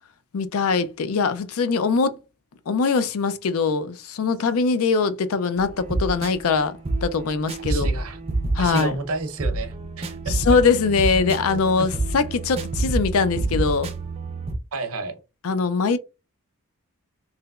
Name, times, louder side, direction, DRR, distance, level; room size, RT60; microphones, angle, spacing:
voice 1, 0.3-2.2 2.7-7.9 8.5-9.0 10.3-13.9 15.4-16.0, left 4 dB, 75° left, 0.4 m, -22 dB
sound 1, 5.6-14.6, right 2 dB, 25° right, 0.4 m, -28 dB
voice 2, 7.6-8.2 8.6-10.4 11.5-11.9 14.7-15.2, right 3 dB, 75° right, 0.7 m, -31 dB
3.2 x 2.9 x 2.3 m
head